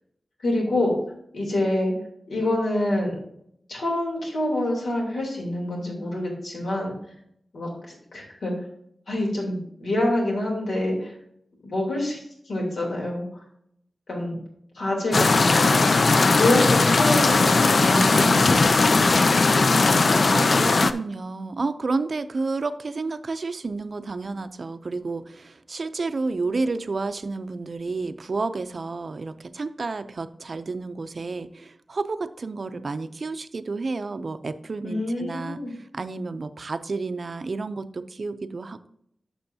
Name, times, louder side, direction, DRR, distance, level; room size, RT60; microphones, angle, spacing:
voice 1, 0.4-0.9 1.3-1.9 2.3-3.1 3.7-6.9 7.5-7.7 8.1-8.5 9.1-11.1 11.6-13.3 14.1-14.3 14.7-15.8 16.4-19.0 34.8-35.7, left 1 dB, 85° left, -2 dB, 3.1 m, -26 dB
sound 1, 15.1-20.9, left 3 dB, 60° left, 0.4 m, -18 dB
voice 2, 20.1-38.9, right 3 dB, 55° right, 11 dB, 0.5 m, -31 dB
11.5 x 6.2 x 2.7 m, 0.72 s
wide cardioid pair, 95°, 0 cm